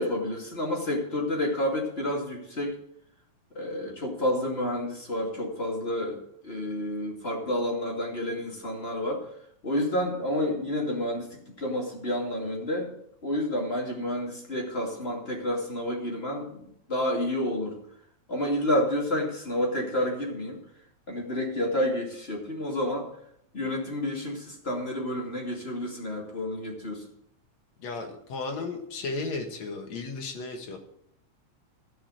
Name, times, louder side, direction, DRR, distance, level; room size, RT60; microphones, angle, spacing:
voice 1, 0.0-2.8 3.5-9.3 9.6-12.9 13.2-17.8 18.3-20.6 21.1-23.1 23.5-27.1, left 1 dB, 20° left, -1 dB, 2.4 m, -29 dB
voice 2, 27.8-30.8, left 3 dB, 65° left, 4 dB, 2.8 m, -34 dB
15.0 x 6.2 x 6.4 m, 0.72 s
omnidirectional pair, 3.4 m